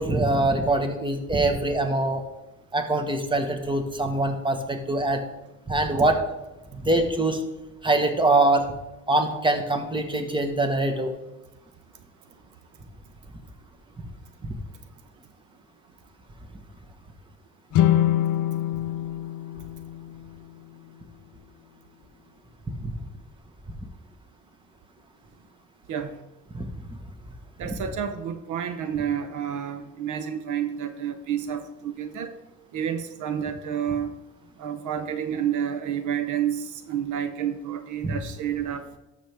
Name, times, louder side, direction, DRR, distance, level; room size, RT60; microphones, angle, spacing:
voice 1, 0.0-2.2 2.7-5.2 5.7-6.2 6.7-7.4 7.8-8.7 9.1-11.1 14.0-14.1 14.4-14.5 22.8-22.9 26.5-26.7 27.6-27.7 38.0-38.2, right 2 dB, 15° right, 5 dB, 1.4 m, -23 dB
sound 1, 17.7-21.0, left 12 dB, 80° left, 0.6 m, -25 dB
voice 2, 27.6-32.3 32.7-34.1 34.6-39.0, right 9 dB, 75° right, 9 dB, 0.8 m, -29 dB
12.5 x 6.7 x 3.5 m, 1.0 s
cardioid pair, 90°, 30 cm